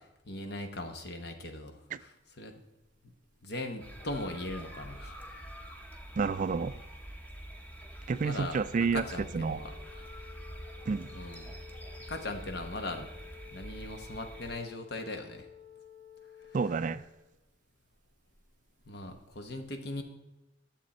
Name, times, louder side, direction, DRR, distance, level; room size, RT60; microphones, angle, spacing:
voice 1, 0.2-2.1 2.4-2.6 3.4-5.2 8.2-10.0 11.1-11.5 12.1-13.1 13.5-15.5 18.9-20.0, left 2 dB, 55° left, 6 dB, 1.2 m, -39 dB
sound 1, 3.8-14.5, right 1 dB, 10° left, 0.9 m, -46 dB
voice 2, 6.2-6.8 8.1-9.0 9.3-9.6 10.9-11.1 16.5-17.0, right 5 dB, 40° right, 14 dB, 0.3 m, -29 dB
sound 2, 8.8-17.0, left 9 dB, 35° left, 1.7 m, -53 dB
12.0 x 7.4 x 4.2 m, 0.96 s
head